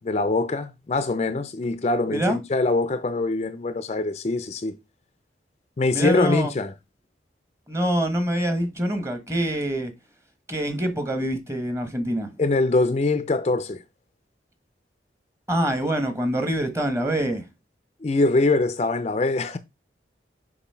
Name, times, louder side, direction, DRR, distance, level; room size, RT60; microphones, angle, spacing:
voice 1, 0.0-4.8 5.8-6.7 12.4-13.8 18.0-19.6, left 3 dB, 35° left, 0.4 m, -23 dB
voice 2, 5.9-6.5 7.7-9.9 10.5-12.3 15.5-17.4, right 1 dB, 15° right, 1.0 m, -25 dB
6.9 x 2.6 x 5.5 m
head